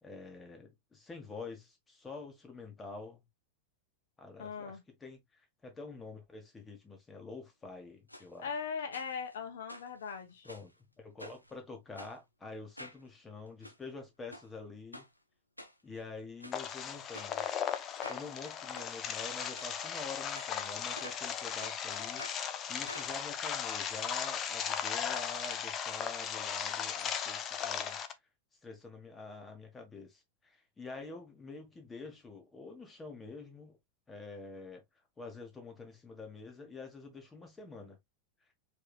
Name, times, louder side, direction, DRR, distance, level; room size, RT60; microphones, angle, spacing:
voice 1, 0.0-3.2 4.2-5.2 5.6-8.5 10.4-15.1 15.8-17.4 18.1-28.0 28.6-33.8 34.1-34.8 35.2-38.0, left 3 dB, 15° left, 1.6 m, -47 dB
voice 2, 4.4-4.8 8.4-10.5, left 6 dB, 60° left, 1.3 m, -39 dB
sound 1, 8.1-8.3 8.9-9.4 9.7-10.7 11.2-11.5 11.9-12.1 12.7-13.0 13.5-13.8 14.3-14.5 14.9-15.1 15.6-16.0 16.4-16.6 17.1-17.3 18.0-18.2 18.7-18.9 19.5-19.7 20.4-21.3 21.6-21.8 22.2-22.4 22.9-24.4 24.7-24.8 25.0-25.1, left 1 dB, 90° left, 0.7 m, -49 dB
sound 2, 16.5-28.1, left 8 dB, 30° left, 0.6 m, -37 dB
4.5 x 3.5 x 2.4 m
figure-of-eight pair, 90°, 0 cm